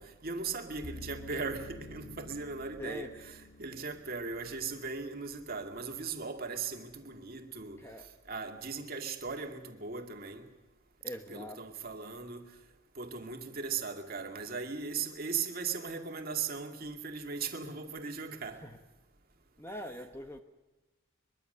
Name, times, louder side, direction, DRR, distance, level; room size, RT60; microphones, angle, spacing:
voice 1, 0.0-10.5 11.3-12.6 13.0-18.6, right 5 dB, 45° right, 2.3 m, -38 dB
sound 1, 0.8-5.9, left 1 dB, 85° left, 1.3 m, -51 dB
voice 2, 2.8-3.1 7.8-8.1 11.0-11.6 18.6-18.8 19.6-20.4, left 1 dB, 10° left, 1.1 m, -43 dB
23.0 x 23.0 x 6.8 m
head